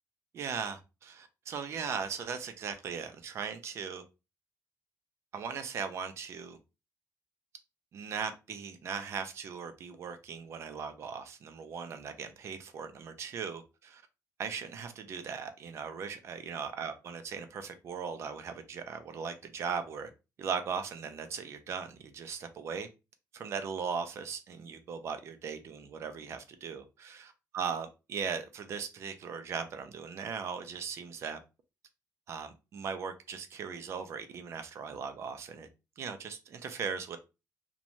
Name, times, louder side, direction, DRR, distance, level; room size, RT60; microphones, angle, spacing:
voice 1, 0.3-4.0 5.3-6.6 7.9-14.0 14.4-20.1 20.4-22.9 23.3-31.4 32.3-35.7 36.0-37.2, right 6 dB, 45° right, 0.4 m, -38 dB
2.6 x 2.2 x 2.9 m
cardioid pair, 175°, 6 cm